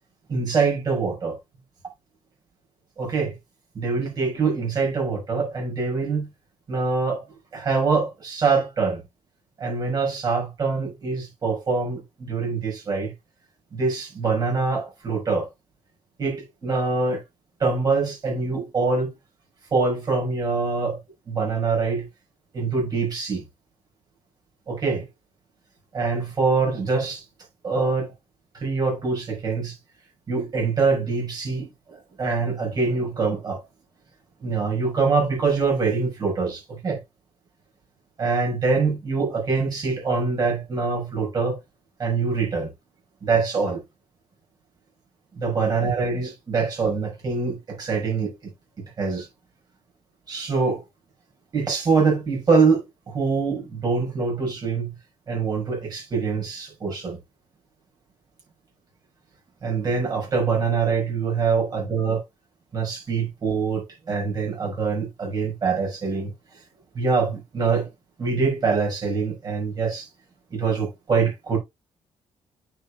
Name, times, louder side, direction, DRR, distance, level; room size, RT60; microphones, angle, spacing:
voice 1, 0.3-1.4 3.0-3.3 3.7-6.3 6.7-7.2 7.5-9.0 9.6-13.1 13.7-15.5 16.2-17.2 17.6-19.1 19.7-21.0 21.3-22.1 22.5-23.4 24.7-25.0 25.9-27.2 27.6-28.1 28.5-29.8 30.3-33.6 34.4-37.0 38.2-41.6 42.0-42.7 43.2-43.8 45.4-48.5 49.0-49.3 50.3-50.8 51.5-54.9 55.3-57.2 59.6-62.2 62.7-66.3 66.9-67.9 68.2-70.1 70.5-71.6, right 4 dB, 35° right, 5.9 m, -24 dB
9.3 x 7.2 x 2.5 m
cardioid pair, 175°, 12 cm